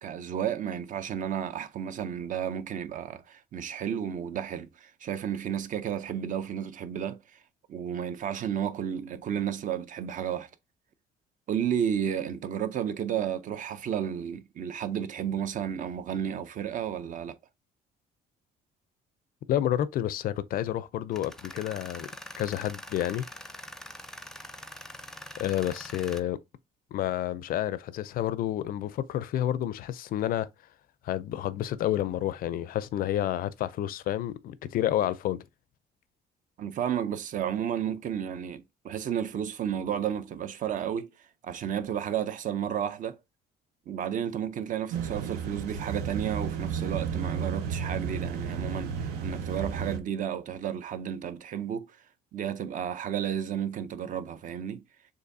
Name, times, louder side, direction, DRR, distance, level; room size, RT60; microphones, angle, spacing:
voice 1, 0.0-7.2 7.7-10.5 11.5-17.4 36.6-41.1 41.4-43.2 43.9-52.0 52.3-54.8, right 9 dB, 50° right, 0.6 m, -32 dB
voice 2, 19.5-22.1 22.4-23.2 25.4-26.4 26.9-30.5 31.0-35.4, left 12 dB, 60° left, 0.5 m, -29 dB
Tools, 21.1-26.2, left 1 dB, 5° left, 0.5 m, -44 dB
sound 1, 44.9-50.0, right 6 dB, 90° right, 0.9 m, -33 dB
6.7 x 2.6 x 2.6 m
cardioid pair, 110°, 17 cm